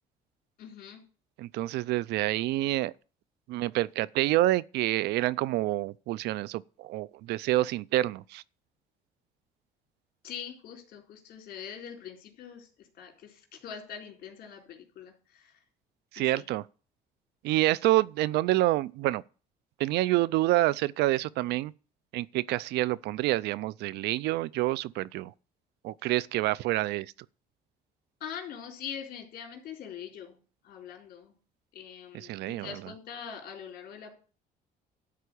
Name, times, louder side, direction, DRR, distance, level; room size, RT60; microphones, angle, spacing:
voice 1, 0.6-1.0 10.2-15.6 16.2-16.5 28.2-30.4 30.6-31.3 31.7-34.1, left 8 dB, 65° left, 3.9 m, -43 dB
voice 2, 1.4-2.9 3.5-8.4 16.1-16.6 17.4-19.2 19.8-21.7 22.1-25.3 25.8-27.1 32.1-32.7, right 17 dB, 80° right, 0.4 m, -27 dB
12.5 x 4.5 x 8.4 m
cardioid pair, 110°, 17 cm